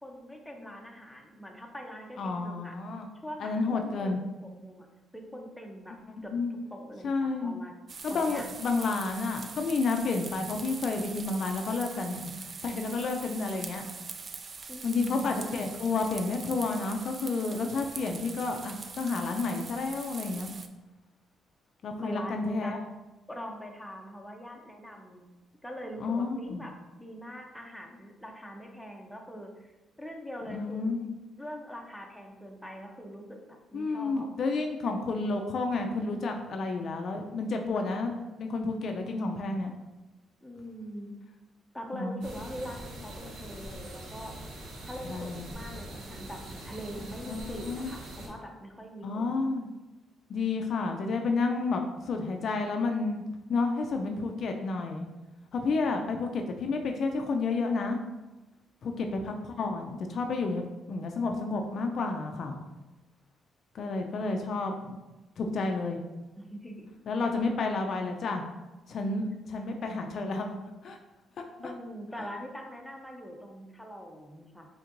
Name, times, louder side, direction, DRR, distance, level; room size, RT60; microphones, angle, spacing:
voice 1, 0.0-2.8 3.2-4.9 5.1-6.0 6.2-7.7 8.1-8.5 14.7-15.4 22.0-22.7 23.3-25.3 25.6-30.9 31.4-34.3 40.4-41.1 41.7-44.4 44.9-49.5 66.4-66.9 67.2-67.3 71.6-74.7, equal, 5° left, 1 dB, 0.7 m, -43 dB
voice 2, 2.2-3.1 3.4-4.2 6.3-6.5 7.0-7.6 8.0-13.8 14.8-20.5 21.8-22.8 26.0-26.7 30.5-31.1 33.7-38.1 38.4-39.7 41.9-42.2 45.1-45.4 47.3-47.9 49.0-49.7 50.3-53.2 53.5-55.1 55.5-58.0 58.8-62.6 63.7-65.0 65.4-66.0 67.1-68.4 68.9-70.6 70.8-71.0, left 3 dB, 60° left, 4 dB, 0.4 m, -30 dB
sound 1, 7.9-20.7, right 5 dB, 40° right, 0.3 m, -43 dB
sound 2, 42.2-48.3, right 1 dB, 75° right, 1.0 m, -43 dB
4.4 x 3.5 x 2.5 m, 1.1 s
cardioid pair, 90°, 0 cm